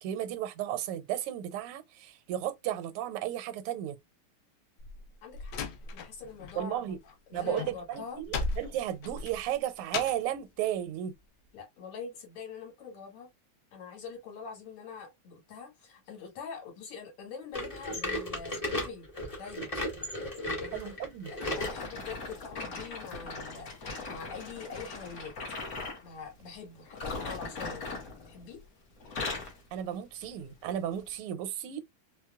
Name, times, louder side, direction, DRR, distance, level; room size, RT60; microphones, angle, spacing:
voice 1, 0.0-4.0 6.6-7.0 7.3-11.1 20.7-21.3 29.7-31.8, right 11 dB, 85° right, 1.6 m, -34 dB
Slam, 4.8-6.6 6.9-10.4, left 4 dB, 75° left, 1.0 m, -37 dB
voice 2, 5.2-5.6 5.9-6.8 7.3-8.2 11.5-13.3 13.7-19.1 19.4-19.7 20.4-25.3 26.0-27.8 28.3-28.6, left 5 dB, 90° left, 2.4 m, -44 dB
sound 1, 17.5-21.8 22.3-22.4 23.1-23.2 24.1-24.2, left 1 dB, 25° left, 0.8 m, -35 dB
sound 2, 21.4-26.0 26.9-28.7 29.0-29.6 30.2-30.4 31.1-31.2, left 3 dB, 50° left, 1.3 m, -39 dB
4.3 x 2.2 x 2.3 m
omnidirectional pair, 2.4 m